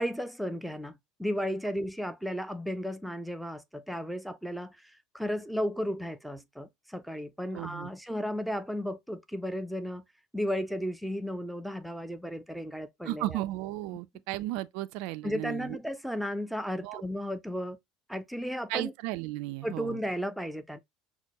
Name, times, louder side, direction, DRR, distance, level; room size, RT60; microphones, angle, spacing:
voice 1, 0.0-10.0 10.3-13.4 15.2-17.8 18.1-18.9 19.6-20.8, equal, ahead, 0.5 m, -34 dB
voice 2, 7.5-7.9 13.0-15.8 16.8-17.0 18.7-20.0, right 16 dB, 60° right, 0.3 m, -35 dB
5.8 x 2.2 x 2.8 m
figure-of-eight pair, 70°, 0 cm